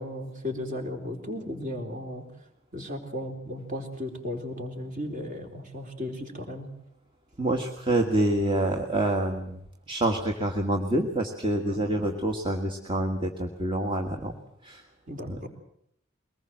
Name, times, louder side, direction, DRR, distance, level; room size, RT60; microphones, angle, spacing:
voice 1, 0.0-2.3 2.7-6.7 11.7-12.0 15.1-15.5, left 1 dB, 40° right, 4 dB, 4.0 m, -35 dB
voice 2, 7.4-9.6 9.9-14.3 14.6-14.8 15.3-15.4, right 1 dB, 25° right, 2 dB, 1.7 m, -27 dB
23.0 x 20.0 x 7.7 m, 0.72 s
head